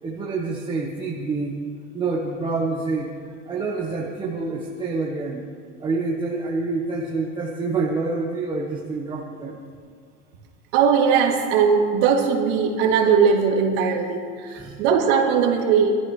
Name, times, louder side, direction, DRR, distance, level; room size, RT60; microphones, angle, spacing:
voice 1, 0.0-1.6 1.9-3.1 3.5-5.4 5.8-9.6 14.5-14.8, right 3 dB, 15° right, -4 dB, 1.1 m, -27 dB
voice 2, 10.7-16.0, right 6 dB, 55° right, -1 dB, 2.6 m, -19 dB
24.5 x 13.5 x 3.2 m, 2.1 s
supercardioid pair, 170°, 33 cm